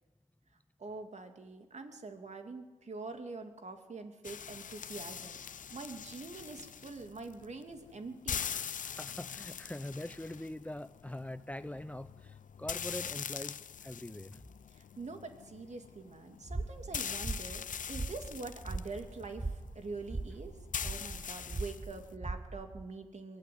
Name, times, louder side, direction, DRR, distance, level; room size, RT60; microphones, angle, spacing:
voice 1, 0.8-5.4 5.7-8.4 14.7-17.6 17.9-20.6 20.8-23.4, right 3 dB, 55° right, 5 dB, 2.6 m, -45 dB
sound 1, 4.2-22.1, left 8 dB, 70° left, 0.7 m, -43 dB
voice 2, 8.4-14.4, left 1 dB, 10° left, 14 dB, 0.7 m, -43 dB
sound 2, 16.4-22.8, right 2 dB, 25° right, 1.5 m, -41 dB
22.5 x 15.5 x 9.6 m, 1.3 s
cardioid pair, 55°, 14 cm